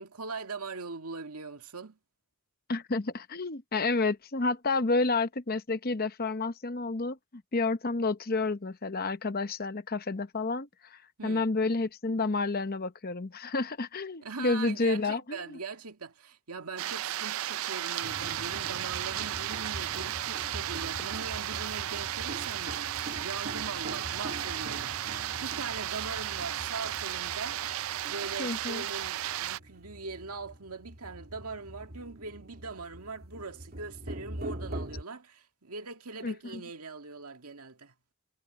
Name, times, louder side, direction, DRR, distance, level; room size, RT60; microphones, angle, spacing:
voice 1, 0.0-2.0 11.2-11.5 14.2-27.6 28.1-37.9, right 4 dB, 90° right, 2.0 m, -41 dB
voice 2, 2.7-15.6 28.4-28.8 36.2-36.6, left 3 dB, 40° left, 0.9 m, -30 dB
sound 1, 16.8-29.6, right 12 dB, 65° right, 0.4 m, -34 dB
sound 2, 17.8-27.0, equal, 10° right, 5.2 m, -55 dB
sound 3, 18.0-35.0, right 1 dB, 45° right, 2.3 m, -43 dB
head